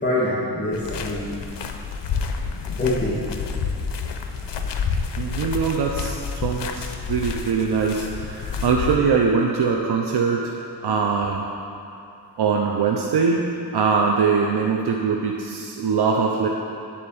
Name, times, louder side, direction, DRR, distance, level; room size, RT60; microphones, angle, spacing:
voice 1, 0.0-1.3 2.8-3.5, left 1 dB, 25° left, -8 dB, 1.8 m, -25 dB
sound 1, 0.7-9.0, left 5 dB, 85° left, 0.7 m, -29 dB
voice 2, 5.2-10.5 10.8-11.4 12.4-16.5, right 5 dB, 70° right, 0 dB, 0.7 m, -22 dB
10.0 x 4.3 x 7.0 m, 2.6 s
cardioid pair, 75°, 41 cm